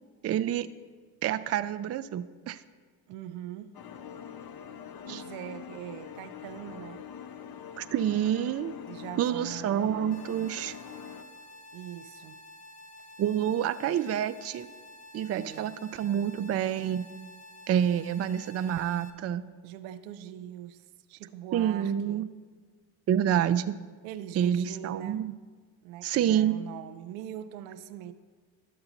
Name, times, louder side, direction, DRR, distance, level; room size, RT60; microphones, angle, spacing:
voice 1, 0.2-0.7 1.2-2.6 5.1-5.2 7.8-8.7 9.2-10.8 13.2-14.7 15.1-17.1 17.7-19.5 21.5-22.3 23.1-23.7 24.4-25.3 26.0-26.6, right 10 dB, 35° right, 13 dB, 0.4 m, -28 dB
voice 2, 3.1-3.7 5.0-7.1 8.8-9.9 11.7-12.4 15.3-15.7 19.6-22.3 24.0-25.2 25.8-28.1, right 11 dB, 80° right, 11 dB, 0.6 m, -42 dB
sound 1, 3.7-11.2, left 8 dB, 45° left, 0.7 m, -44 dB
sound 2, 10.1-19.1, left 1 dB, 30° left, 1.1 m, -50 dB
11.5 x 6.9 x 3.9 m, 1.5 s
hypercardioid pair, 45°, 50 cm